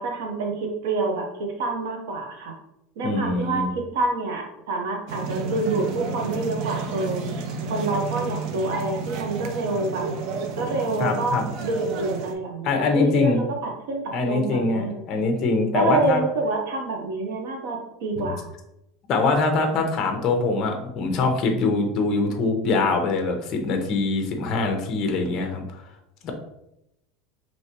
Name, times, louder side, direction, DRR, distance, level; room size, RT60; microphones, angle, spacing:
voice 1, 0.0-2.5 3.0-7.2 7.7-10.1 10.6-15.0 15.7-18.5, right 3 dB, 75° right, 2 dB, 0.8 m, -27 dB
voice 2, 3.0-3.7 11.0-11.5 12.6-13.4 14.1-16.2 18.2-18.3 19.1-25.8 26.2-26.3, left 3 dB, 30° left, 4 dB, 0.6 m, -23 dB
sound 1, 5.1-12.3, right 4 dB, 45° right, 0.4 m, -31 dB
4.7 x 2.9 x 2.8 m, 0.85 s
supercardioid pair, 175°, 0 cm